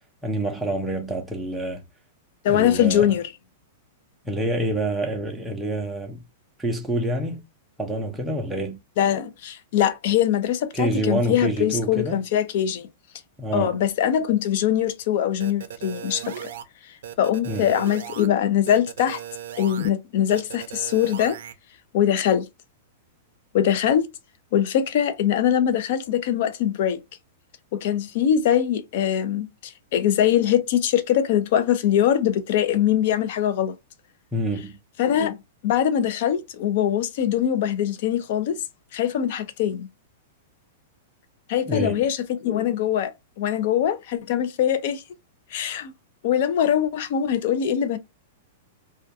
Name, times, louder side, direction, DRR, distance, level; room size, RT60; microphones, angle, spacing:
voice 1, 0.2-1.8 2.5-3.1 4.2-6.2 6.6-7.4 7.8-8.8 10.7-12.3 13.4-13.8 17.5-17.8 34.3-34.8 41.7-42.0, right 1 dB, 5° right, 0.5 m, -27 dB
voice 2, 2.4-3.2 9.0-12.9 13.5-16.5 17.2-19.2 19.6-21.4 21.9-22.5 23.5-24.1 24.5-27.0 27.7-33.8 35.0-35.4 35.6-38.6 38.9-39.9 41.5-43.1 43.4-45.0 45.5-45.9 46.2-48.0, left 10 dB, 50° left, 0.4 m, -22 dB
sound 1, 15.4-16.6 17.0-18.3 18.7-19.9 20.3-21.5, right 10 dB, 70° right, 0.4 m, -37 dB
2.2 x 2.2 x 2.6 m
supercardioid pair, 165°, 0 cm